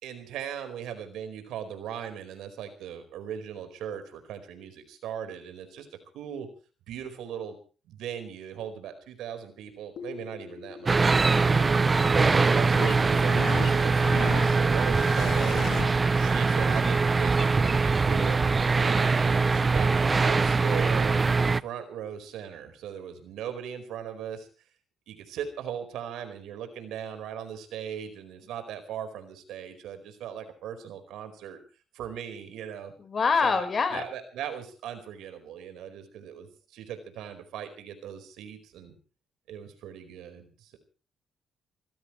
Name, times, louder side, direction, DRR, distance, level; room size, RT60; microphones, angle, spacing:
voice 1, 0.0-5.9 6.1-6.5 6.9-7.6 7.8-11.0 11.4-11.8 12.1-15.8 16.1-18.4 18.8-21.3 21.6-24.5 25.1-31.6 31.9-32.9 33.4-33.7 33.9-39.0 39.5-40.8, right 9 dB, 85° right, 8 dB, 4.7 m, -38 dB
sound 1, 10.0-15.9, left 7 dB, 75° left, 3.1 m, -38 dB
sound 2, 10.9-21.6, right 4 dB, 30° right, 0.7 m, -23 dB
voice 2, 11.6-12.3 33.0-34.0, left 5 dB, 40° left, 9 dB, 4.6 m, -27 dB
27.0 x 15.5 x 3.2 m, 0.37 s
cardioid pair, 90°, 0 cm